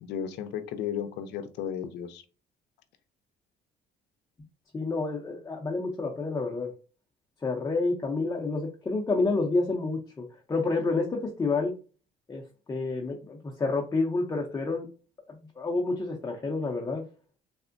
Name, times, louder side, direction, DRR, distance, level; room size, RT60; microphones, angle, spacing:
voice 1, 0.0-2.2, left 8 dB, 80° left, 10 dB, 0.5 m, -34 dB
voice 2, 4.7-6.7 7.4-11.7 12.3-12.4 12.7-14.9 15.3-17.0, left 3 dB, 20° left, 0 dB, 0.6 m, -29 dB
3.4 x 2.1 x 2.5 m, 0.35 s
cardioid pair, 110°, 17 cm